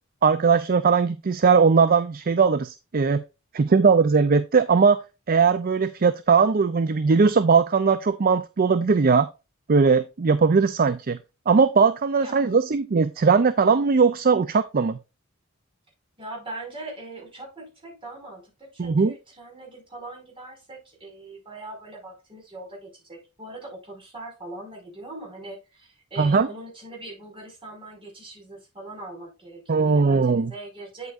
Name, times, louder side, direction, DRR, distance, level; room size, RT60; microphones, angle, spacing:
voice 1, 0.2-3.2 3.5-5.0 5.3-9.3 9.7-11.2 11.5-15.0 18.8-19.1 26.2-26.5 29.7-30.5, right 5 dB, 45° right, 0.5 m, -19 dB
voice 2, 16.2-31.1, right 2 dB, 25° right, 5.4 m, -41 dB
8.4 x 8.0 x 2.5 m
head